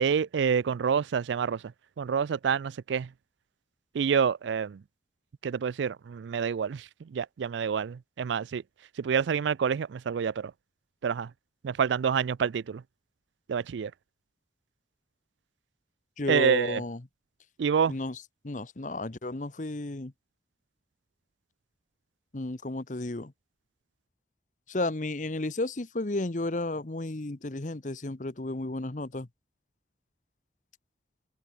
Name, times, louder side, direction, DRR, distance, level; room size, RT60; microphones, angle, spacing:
voice 1, 0.0-1.6 2.0-3.1 3.9-4.8 5.4-6.8 7.1-8.6 9.0-10.5 11.0-11.3 11.6-12.8 13.5-13.9 16.3-16.8 17.6-17.9, right 7 dB, 85° right, 0.4 m, -27 dB
voice 2, 16.2-17.1 17.9-20.1 22.3-23.3 24.7-29.3, left 2 dB, 45° left, 1.0 m, -33 dB
head